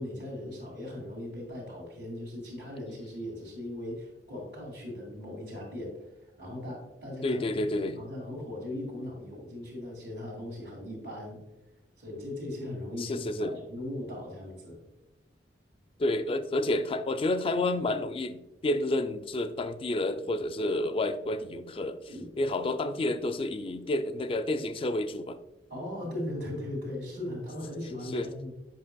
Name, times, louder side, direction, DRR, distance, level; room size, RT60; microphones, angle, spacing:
voice 1, 0.0-7.7 8.0-11.4 12.0-14.8 22.1-22.3 25.7-28.5, left 1 dB, 70° right, -7 dB, 2.2 m, -38 dB
voice 2, 7.2-8.0 13.0-13.6 16.0-22.0 22.4-25.4 28.1-28.3, left 2 dB, 30° left, 9 dB, 0.4 m, -30 dB
7.7 x 5.6 x 2.2 m, 0.94 s
head